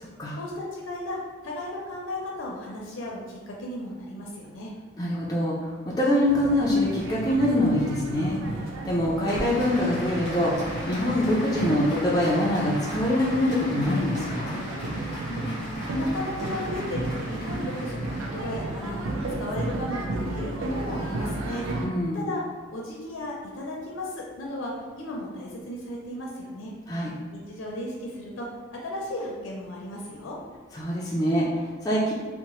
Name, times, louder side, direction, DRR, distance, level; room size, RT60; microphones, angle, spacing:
voice 1, 0.3-4.7 15.2-21.6 22.1-22.4 22.7-24.7 25.0-26.7 27.3-30.4, left 1 dB, 75° left, -2 dB, 0.5 m, -35 dB
voice 2, 5.0-5.7 6.0-8.4 8.8-14.6 21.8-22.3 26.9-27.1 30.7-32.1, left 1 dB, 20° left, -6 dB, 0.3 m, -24 dB
sound 1, 6.3-21.9, right 2 dB, 75° right, 0.4 m, -33 dB
Applause, 9.3-19.3, equal, 35° right, 0.9 m, -39 dB
2.8 x 2.0 x 2.9 m, 1.5 s
head